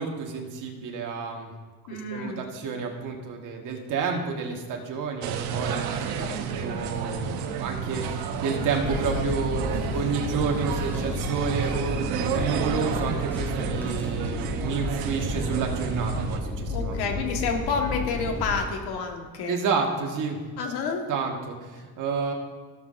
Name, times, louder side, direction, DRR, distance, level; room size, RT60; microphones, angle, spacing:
voice 1, 0.0-1.5 2.1-9.7 9.9-17.1 19.5-20.4 21.1-22.3, right 5 dB, 55° right, 1 dB, 1.6 m, -30 dB
voice 2, 1.9-2.4 16.7-19.6 20.6-21.0, left 5 dB, 90° left, 3 dB, 1.6 m, -29 dB
sound 1, 5.2-16.4, right 7 dB, 85° right, 0.9 m, -30 dB
sound 2, 8.8-18.6, left 2 dB, 5° left, 1.9 m, -33 dB
16.5 x 7.5 x 2.6 m, 1.5 s
cardioid pair, 150°, 37 cm